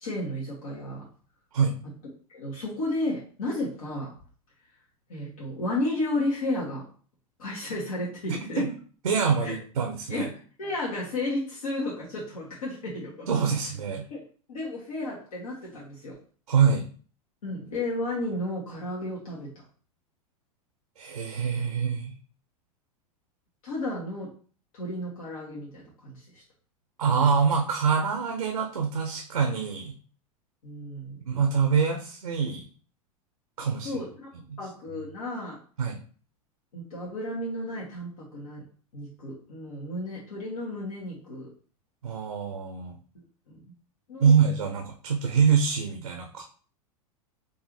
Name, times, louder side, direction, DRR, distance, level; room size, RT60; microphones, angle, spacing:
voice 1, 0.0-1.1 2.3-4.1 5.1-6.9 7.4-8.6 9.4-9.6 10.1-13.3 14.1-14.2 14.5-16.2 17.4-19.6 23.6-24.3 24.7-26.4 30.6-31.2 33.8-34.3 34.6-35.6 36.7-38.6 38.9-41.5 43.1-43.6 44.1-44.4, left 1 dB, 70° left, -5 dB, 1.3 m, -33 dB
voice 2, 8.3-8.7 9.0-10.3 13.3-14.0 16.5-16.8 21.0-22.1 27.0-29.9 31.3-32.6 33.6-33.9 34.5-34.6 35.8-36.0 42.0-42.9 44.2-46.4, right 6 dB, 80° right, 4 dB, 0.6 m, -25 dB
4.6 x 2.6 x 3.1 m, 0.42 s
figure-of-eight pair, 90°, 19 cm